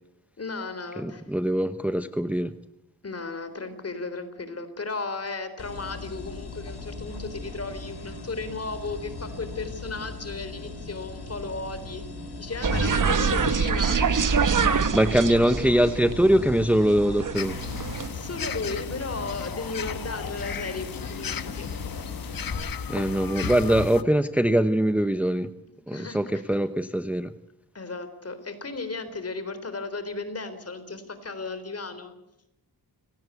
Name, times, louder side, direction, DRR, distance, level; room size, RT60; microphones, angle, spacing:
voice 1, 0.4-1.2 3.0-12.0 12.4-14.1 14.5-14.6 18.1-21.7 25.9-26.4 27.7-32.1, left 3 dB, 40° left, 11 dB, 3.8 m, -35 dB
voice 2, 1.0-2.5 14.9-17.5 22.9-25.5 25.9-27.3, right 1 dB, 5° right, 10 dB, 0.8 m, -22 dB
sound 1, 5.6-22.5, left 3 dB, 85° left, 7.0 m, -39 dB
sound 2, 12.6-18.1, right 6 dB, 55° right, 1.5 m, -25 dB
sound 3, 17.3-24.0, left 7 dB, 60° left, 1.3 m, -35 dB
30.0 x 18.0 x 8.3 m, 0.89 s
wide cardioid pair, 120°, 38 cm